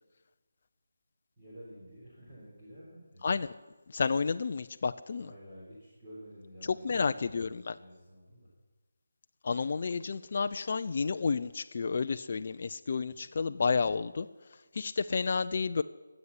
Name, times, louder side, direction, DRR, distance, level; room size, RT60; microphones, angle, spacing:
voice 1, 1.4-3.2 5.2-8.5 13.0-13.3, equal, 20° right, -9 dB, 3.7 m, -51 dB
voice 2, 3.9-5.3 6.6-7.7 9.4-14.3 14.7-15.8, left 5 dB, 40° left, 9 dB, 0.4 m, -31 dB
12.5 x 8.1 x 9.6 m, 1.2 s
figure-of-eight pair, 175°, 0 cm